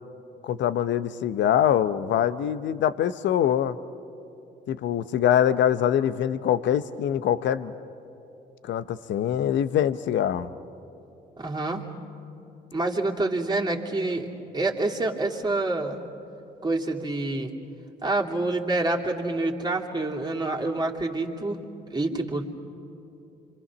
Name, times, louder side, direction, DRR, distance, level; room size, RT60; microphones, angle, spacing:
voice 1, 0.4-3.8 4.7-7.7 8.6-10.5, left 10 dB, 65° left, 14 dB, 0.8 m, -24 dB
voice 2, 11.4-11.9 12.7-14.3 14.5-16.0 16.6-17.5 18.0-21.6 21.9-22.4, right 2 dB, 20° right, -1 dB, 2.9 m, -27 dB
27.0 x 25.0 x 6.2 m, 2.8 s
hypercardioid pair, 55°, 21 cm